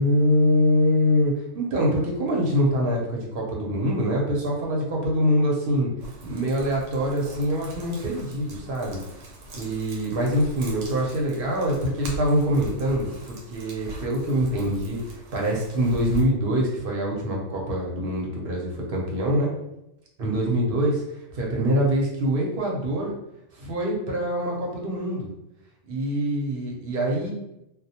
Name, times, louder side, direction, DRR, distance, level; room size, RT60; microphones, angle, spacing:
voice 1, 0.0-5.9 6.2-9.0 9.5-19.5 20.2-21.0 21.3-23.1 23.6-25.3 25.9-27.3, equal, 55° right, -2 dB, 0.8 m, -24 dB
sound 1, 6.0-16.2, right 2 dB, 85° right, 1.0 m, -42 dB
2.2 x 2.1 x 2.7 m, 0.85 s
omnidirectional pair, 1.2 m